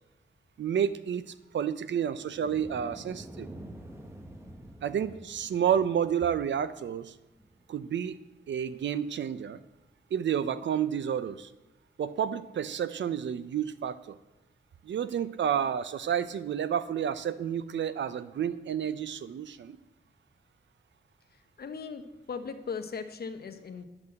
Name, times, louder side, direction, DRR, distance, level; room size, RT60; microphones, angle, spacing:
voice 1, 0.6-3.5 4.8-7.1 7.7-8.2 8.5-9.6 10.1-11.5 12.0-14.2 14.8-19.8, right 8 dB, 70° right, 14 dB, 0.6 m, -30 dB
sound 1, 2.1-8.5 9.1-9.2 10.6-10.7, right 1 dB, 15° right, 1.0 m, -48 dB
voice 2, 21.6-22.0 22.3-23.8, left 5 dB, 55° left, 8 dB, 1.0 m, -38 dB
10.5 x 6.1 x 7.7 m, 1.0 s
wide cardioid pair, 120°, 19 cm